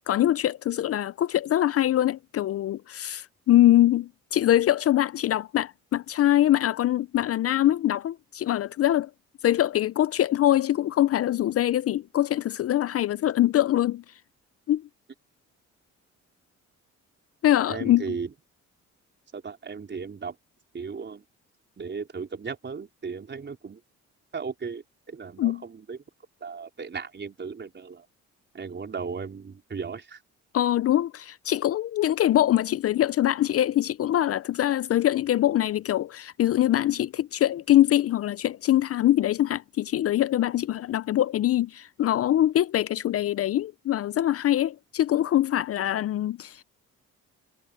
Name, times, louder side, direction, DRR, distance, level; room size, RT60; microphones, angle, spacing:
voice 1, 0.1-9.1 9.4-14.0 14.7-14.8 17.4-18.1 25.4-25.6 30.5-46.6, left 13 dB, 50° left, 0.5 m, -23 dB
voice 2, 17.7-18.3 19.3-20.4 20.7-21.2 21.8-23.8 24.3-26.0 26.4-28.1 28.5-30.2, right 5 dB, 35° right, 4.5 m, -36 dB
cardioid pair, 90°, 30 cm